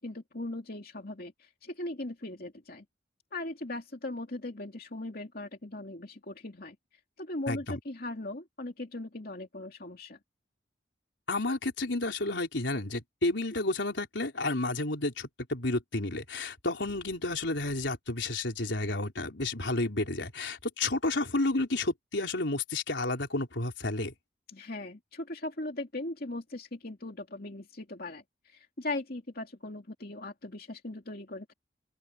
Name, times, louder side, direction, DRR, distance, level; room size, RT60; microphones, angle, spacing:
voice 1, 0.0-2.8 3.3-6.8 7.2-10.2 24.5-31.5, left 2 dB, 55° left, 2.7 m, -39 dB
voice 2, 7.5-7.8 11.3-24.1, left 2 dB, 85° left, 3.9 m, -31 dB
open air
head